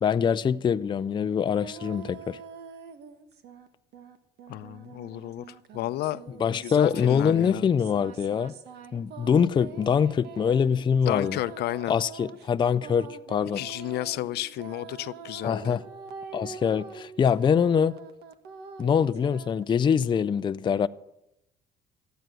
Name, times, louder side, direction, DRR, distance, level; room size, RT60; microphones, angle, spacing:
voice 1, 0.0-2.4 6.4-8.5 8.9-11.4 11.9-13.6 15.4-15.8 16.3-17.9 18.8-20.9, left 7 dB, 30° left, 0.4 m, -24 dB
sound 1, 1.6-3.7 3.9-19.6, right 6 dB, 75° right, 1.5 m, -45 dB
voice 2, 4.5-6.2 6.5-7.7 11.1-12.0 13.6-15.8, left 15 dB, 75° left, 0.6 m, -32 dB
14.5 x 9.2 x 7.7 m
cardioid pair, 110°, 17 cm